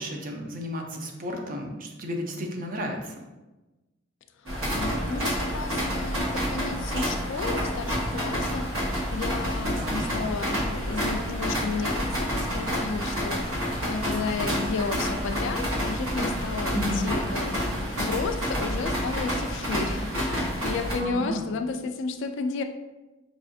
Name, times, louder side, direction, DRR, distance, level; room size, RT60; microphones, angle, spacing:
voice 1, 0.0-3.2 9.7-10.0 16.7-17.0 21.0-21.4, equal, 40° right, 2 dB, 0.5 m, -33 dB
voice 2, 4.4-22.6, left 4 dB, 60° left, 8 dB, 0.3 m, -33 dB
sound 1, 4.5-20.9, equal, 75° right, 1.0 m, -29 dB
4.7 x 2.4 x 2.6 m, 1.1 s
head